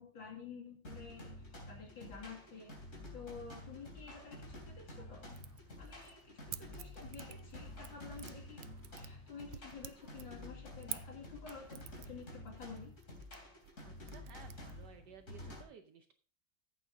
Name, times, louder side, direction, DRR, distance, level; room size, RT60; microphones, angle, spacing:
voice 1, 0.0-2.7 3.1-5.4 5.8-8.6 9.0-12.9, left 5 dB, 80° left, -2 dB, 3.0 m, -51 dB
sound 1, 0.8-15.6, left 1 dB, 40° left, 3.7 m, -50 dB
sound 2, 1.0-1.1 1.6-1.7 1.9-2.7 3.1-3.2 3.7-3.8 4.1-4.9 5.3-15.6, right 13 dB, 80° right, 0.7 m, -52 dB
sound 3, 1.9-11.8, left 2 dB, 5° right, 4.3 m, -69 dB
voice 2, 13.8-16.1, right 6 dB, 65° right, 7 dB, 1.3 m, -57 dB
14.5 x 8.5 x 2.7 m, 0.42 s
omnidirectional pair, 2.0 m